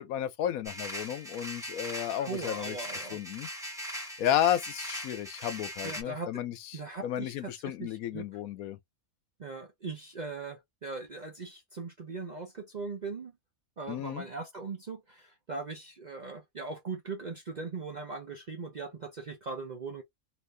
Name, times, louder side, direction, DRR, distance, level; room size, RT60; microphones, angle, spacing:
voice 1, 0.0-2.8 3.1-3.5 4.2-8.8 13.9-14.3, left 11 dB, 80° left, 1.1 m, -32 dB
sound 1, 0.6-6.0, equal, 5° right, 0.9 m, -40 dB
voice 2, 2.2-3.2 5.8-6.3 6.7-8.3 9.4-13.3 13.8-20.0, right 4 dB, 50° right, 0.5 m, -40 dB
2.9 x 2.5 x 3.3 m
omnidirectional pair, 1.5 m